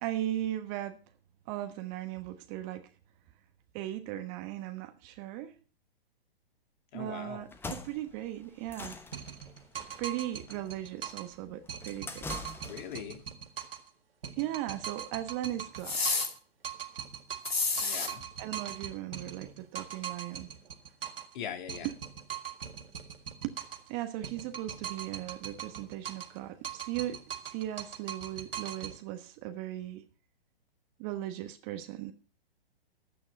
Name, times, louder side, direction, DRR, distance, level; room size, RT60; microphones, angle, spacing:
voice 1, 0.0-1.0 1.5-2.9 3.7-5.5 6.9-8.9 10.0-12.3 14.4-16.0 18.4-20.5 21.8-21.9 23.4-23.6 23.9-30.0 31.0-32.1, right 13 dB, 30° right, 9 dB, 1.2 m, -37 dB
voice 2, 6.9-7.5 12.6-13.2 17.8-18.2 21.3-21.9, left 8 dB, 50° left, 6 dB, 2.1 m, -41 dB
sound 1, 7.4-13.1, left 3 dB, 5° left, 1.0 m, -44 dB
sound 2, 9.1-11.3 11.7-13.9 14.2-16.4 16.6-21.3 21.7-23.9 24.2-26.4 26.6-29.0, right 8 dB, 70° right, 1.9 m, -41 dB
sound 3, 15.8-16.3 17.4-18.1, left 3 dB, 85° left, 2.5 m, -29 dB
11.5 x 9.0 x 5.4 m, 0.38 s
figure-of-eight pair, 115°, 30 cm